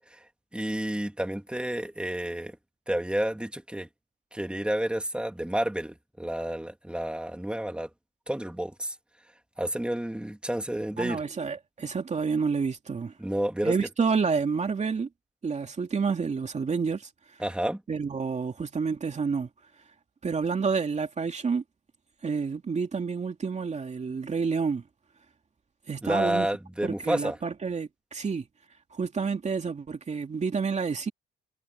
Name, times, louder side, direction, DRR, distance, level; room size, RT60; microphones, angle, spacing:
voice 1, 0.5-2.6 2.9-3.9 4.3-7.9 8.3-8.9 9.6-11.2 13.2-13.8 17.4-17.8 26.0-27.4, right 1 dB, 5° right, 3.2 m, -30 dB
voice 2, 11.0-13.1 13.6-15.1 15.4-17.1 17.9-19.5 20.2-21.6 22.2-24.8 25.9-26.5 26.8-28.4 28.9-31.1, right 5 dB, 35° right, 2.7 m, -29 dB
cardioid pair, 90°, 20 cm